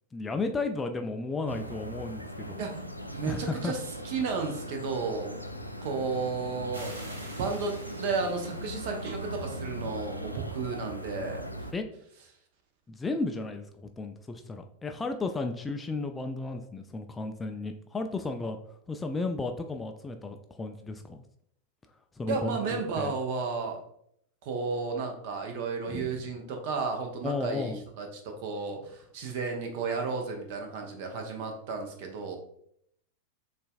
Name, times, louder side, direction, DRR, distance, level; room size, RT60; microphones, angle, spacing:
voice 1, 0.1-2.6 3.3-3.7 11.7-11.8 12.9-18.6 18.9-21.2 22.2-23.1 25.9-26.1 27.2-27.8, left 3 dB, 15° left, 6 dB, 0.3 m, -34 dB
sound 1, 1.5-11.7, equal, 90° right, 0.4 m, -39 dB
voice 2, 2.6-5.3 5.8-6.9 7.4-11.5 22.3-23.8 24.4-32.4, right 4 dB, 50° right, 3 dB, 0.8 m, -33 dB
sound 2, 6.7-10.0, right 1 dB, 75° right, 1.0 m, -48 dB
6.6 x 2.5 x 2.3 m, 0.71 s
figure-of-eight pair, 90°, 0 cm